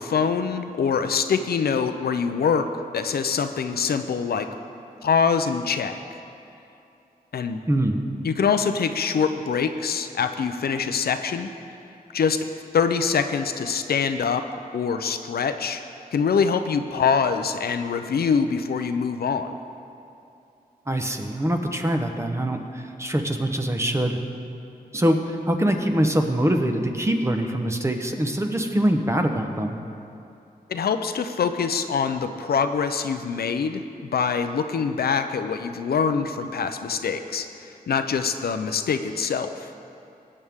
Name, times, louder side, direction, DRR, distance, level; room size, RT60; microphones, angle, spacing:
voice 1, 0.0-2.7 2.9-4.5 5.0-6.0 7.3-7.6 8.2-11.5 12.1-12.4 12.7-14.4 14.7-15.8 16.1-19.5 30.7-39.7, left 6 dB, 80° left, 8 dB, 0.6 m, -24 dB
voice 2, 7.7-8.0 20.9-24.2 24.9-29.8, right 1 dB, 20° right, 5 dB, 1.0 m, -24 dB
19.0 x 8.6 x 3.6 m, 2.7 s
wide cardioid pair, 90°, 16 cm